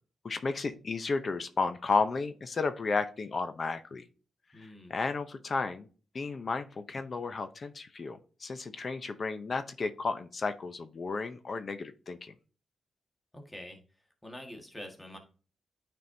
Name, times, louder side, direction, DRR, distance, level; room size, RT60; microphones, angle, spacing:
voice 1, 0.2-4.0 4.5-5.9 6.1-12.3, left 4 dB, 45° left, 10 dB, 0.6 m, -33 dB
voice 2, 4.5-5.0 13.3-13.8 14.2-15.2, left 1 dB, 10° left, 2 dB, 1.6 m, -45 dB
9.4 x 4.3 x 2.7 m, 0.37 s
cardioid pair, 80°, 0 cm